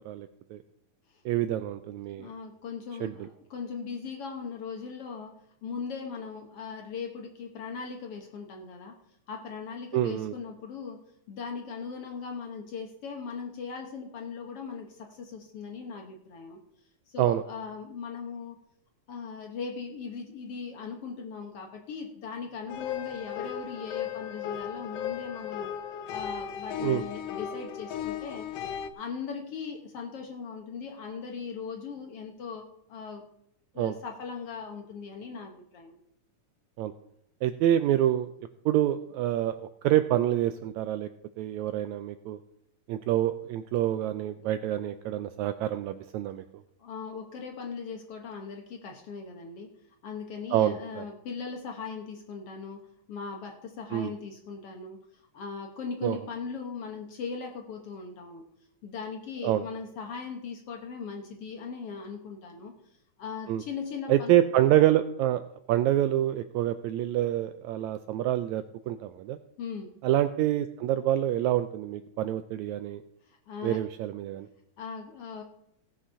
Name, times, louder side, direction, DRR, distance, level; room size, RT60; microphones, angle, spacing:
voice 1, 0.0-0.6 1.2-2.3 3.0-3.1 9.9-10.3 17.2-17.4 26.8-27.0 33.8-34.0 36.8-36.9 37.4-38.3 38.6-39.5 39.8-41.1 41.4-42.4 42.9-46.4 50.5-51.0 53.9-54.1 56.0-56.2 59.4-59.6 63.5-63.6 64.1-65.4 65.7-69.4 70.0-73.0 73.6-74.5, right 12 dB, 80° right, 11 dB, 1.6 m, -26 dB
voice 2, 2.2-9.0 9.3-11.0 11.3-16.6 17.1-18.6 19.1-25.7 26.1-28.5 28.9-33.3 33.7-36.0 46.8-49.7 50.0-58.4 58.8-62.8 63.2-64.4 69.6-69.9 73.2-73.9 74.8-75.4, left 5 dB, 60° left, 4 dB, 1.6 m, -39 dB
sound 1, 22.7-28.9, left 9 dB, 85° left, 1.4 m, -36 dB
17.0 x 6.2 x 5.5 m, 0.77 s
omnidirectional pair, 3.7 m